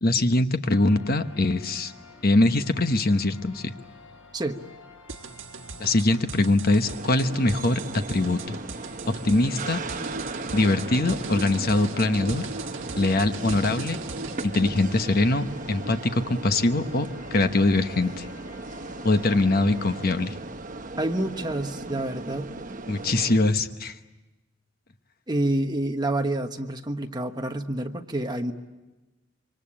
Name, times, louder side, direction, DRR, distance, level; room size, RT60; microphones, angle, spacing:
voice 1, 0.0-1.9 2.2-3.7 5.8-8.6 9.2-9.8 10.5-12.4 13.0-14.0 14.4-18.3 19.0-20.4 22.9-23.9, left 2 dB, 50° left, 8 dB, 1.1 m, -23 dB
sound 1, 0.6-20.2, left 3 dB, 90° left, 4.2 m, -50 dB
sound 2, 5.1-14.7, right 4 dB, 80° right, 1.5 m, -38 dB
sound 3, 6.8-23.4, right 2 dB, 40° right, 1.0 m, -37 dB
voice 2, 20.9-22.5 25.3-28.5, right 1 dB, 20° right, 4 dB, 1.3 m, -28 dB
26.5 x 24.0 x 8.7 m, 1.1 s
head